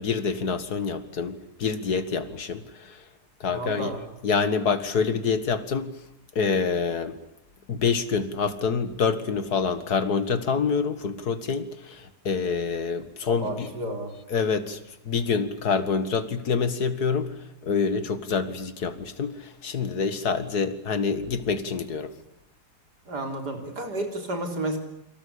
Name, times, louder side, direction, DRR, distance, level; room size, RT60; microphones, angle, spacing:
voice 1, 0.0-3.0 3.4-4.0 4.2-5.9 6.4-7.2 7.7-13.7 14.3-14.8 15.1-17.4 17.6-22.1, left 5 dB, 70° left, 11 dB, 2.4 m, -26 dB
voice 2, 3.5-4.0 13.3-14.1 23.1-24.8, right 1 dB, 85° right, 5 dB, 4.5 m, -31 dB
29.0 x 24.0 x 8.5 m, 0.79 s
omnidirectional pair, 1.7 m